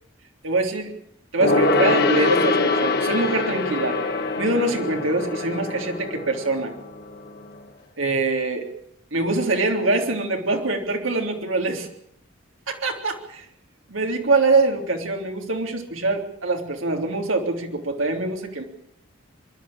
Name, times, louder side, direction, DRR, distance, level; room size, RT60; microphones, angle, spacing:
voice 1, 0.4-0.9 1.3-4.0 4.4-6.7 8.0-8.7 9.1-11.9 12.7-13.5 13.9-18.6, right 3 dB, 75° right, 2 dB, 3.5 m, -24 dB
Gong, 1.4-7.3 7.6-7.7, left 3 dB, 50° left, 2.3 m, -23 dB
24.5 x 12.5 x 8.8 m, 0.73 s
head